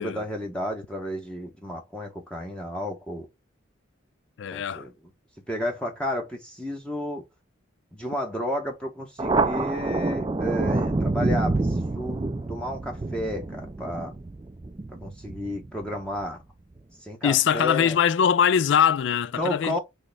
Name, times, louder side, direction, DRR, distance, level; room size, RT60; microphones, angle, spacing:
voice 1, 0.0-3.3 4.5-4.9 5.5-7.2 7.9-12.2 12.5-14.1 15.0-16.4 17.0-18.0 19.4-19.8, left 1 dB, 5° left, 0.8 m, -32 dB
voice 2, 4.4-4.9 17.2-19.8, left 8 dB, 60° left, 0.3 m, -22 dB
Thunder, 9.2-16.2, right 2 dB, 20° right, 0.3 m, -27 dB
6.3 x 2.1 x 3.3 m
head